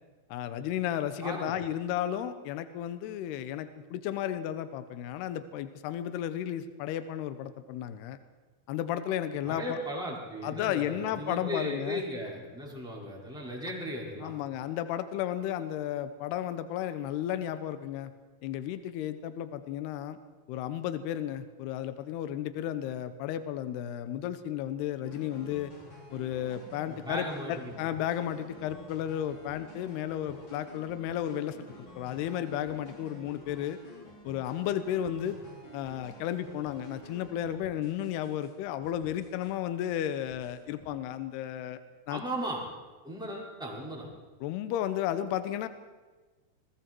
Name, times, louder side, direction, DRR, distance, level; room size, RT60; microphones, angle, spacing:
voice 1, 0.3-8.2 8.7-9.8 10.4-12.0 14.2-18.1 18.4-20.2 20.5-25.7 26.1-31.6 32.0-33.8 34.3-35.4 35.7-41.8 42.1-42.2 44.4-45.7, left 11 dB, 80° left, 11 dB, 2.9 m, -33 dB
voice 2, 1.2-1.6 9.4-14.3 26.9-27.7 42.1-42.6 43.0-44.1, equal, ahead, -4 dB, 5.0 m, -36 dB
sound 1, 25.0-38.5 38.8-39.5 39.8-41.0, left 1 dB, 30° left, 4.1 m, -50 dB
28.5 x 21.5 x 4.6 m, 1.3 s
omnidirectional pair, 4.7 m